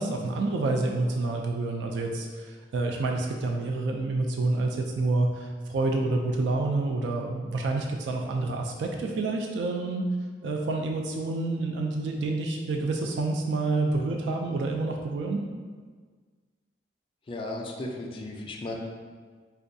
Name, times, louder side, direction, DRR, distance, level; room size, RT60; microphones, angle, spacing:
voice 1, 0.0-10.1 10.4-15.4, right 2 dB, 75° right, 1 dB, 0.3 m, -28 dB
voice 2, 17.3-18.7, left 2 dB, 30° left, 0 dB, 0.3 m, -35 dB
4.4 x 2.3 x 2.6 m, 1.5 s
head